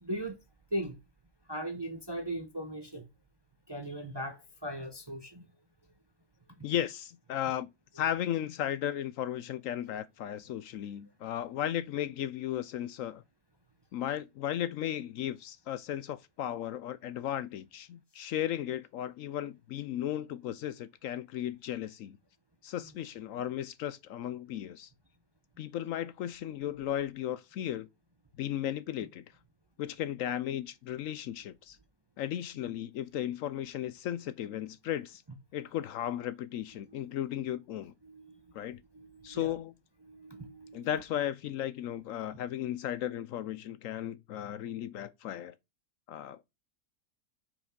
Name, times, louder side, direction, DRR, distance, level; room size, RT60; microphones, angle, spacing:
voice 1, 0.0-0.4 0.7-1.0 1.5-3.1 3.7-5.4 38.0-38.4 38.6-39.6 40.0-40.9, right 1 dB, 25° right, 0.6 m, -39 dB
voice 2, 6.6-7.7 7.9-13.2 13.9-22.2 22.6-24.9 25.6-27.9 28.4-29.2 29.8-31.8 32.2-35.2 35.5-37.9 38.5-38.8 39.2-39.7 40.7-45.5 46.1-46.4, left 11 dB, 70° left, 0.9 m, -35 dB
5.8 x 4.9 x 5.2 m
omnidirectional pair, 1.6 m